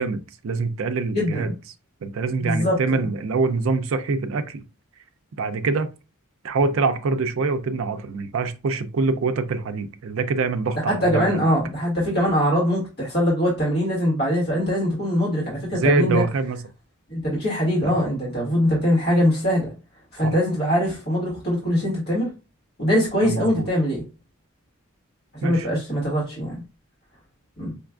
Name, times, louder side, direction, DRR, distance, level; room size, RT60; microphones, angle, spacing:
voice 1, 0.0-1.5 2.0-4.6 5.4-5.9 6.4-11.5 15.7-16.6 17.8-18.0 20.2-20.3 23.2-23.7 25.4-25.7, right 4 dB, 65° right, 0.4 m, -24 dB
voice 2, 1.1-1.5 2.4-3.0 10.9-16.2 17.1-19.7 20.1-22.3 22.8-24.0 25.4-26.5 27.6-27.7, equal, 50° left, 1.5 m, -22 dB
5.1 x 2.3 x 2.4 m
head